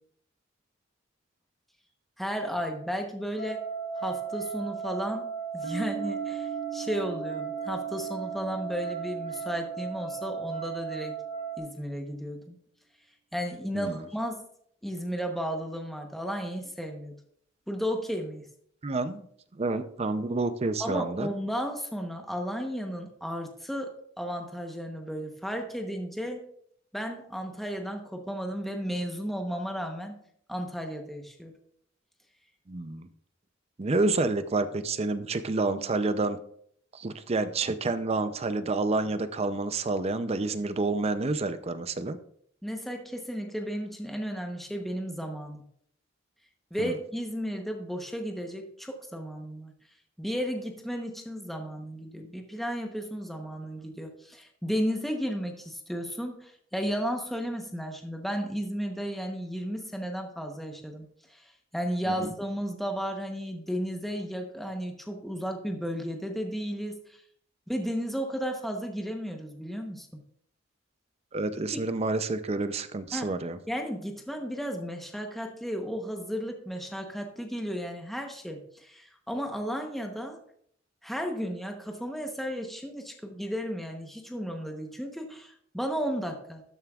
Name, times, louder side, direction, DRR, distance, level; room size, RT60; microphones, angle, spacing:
voice 1, 2.2-3.6 4.0-11.2 11.6-12.6 13.3-14.4 14.8-17.2 17.7-18.5 20.8-26.4 26.9-30.2 30.5-31.5 42.6-45.6 46.7-49.7 50.2-61.4 61.7-67.2 67.7-70.2 71.8-71.9 73.1-73.3 73.7-80.4 81.0-86.6, equal, ahead, 3 dB, 0.9 m, -34 dB
sound 1, 3.4-11.6, right 6 dB, 60° left, 3.7 m, -36 dB
Piano, 5.6-11.0, right 8 dB, 90° right, 2.0 m, -42 dB
voice 2, 18.8-19.3 19.5-21.3 32.7-33.1 33.8-36.4 36.9-42.2 46.8-46.9 62.2-62.3 71.3-73.6, right 3 dB, 30° right, 11 dB, 0.5 m, -29 dB
13.0 x 9.1 x 2.4 m, 0.66 s
head